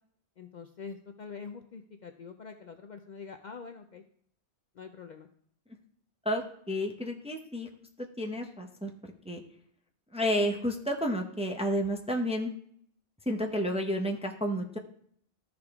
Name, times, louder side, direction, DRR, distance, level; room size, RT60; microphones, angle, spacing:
voice 1, 0.4-4.0 4.8-5.3, left 5 dB, 55° left, 5 dB, 0.6 m, -45 dB
voice 2, 6.2-7.7 8.0-8.9 9.2-9.4 10.1-12.5 13.3-14.8, equal, 5° right, 3 dB, 0.6 m, -31 dB
13.5 x 5.0 x 3.5 m, 0.66 s
omnidirectional pair, 1.1 m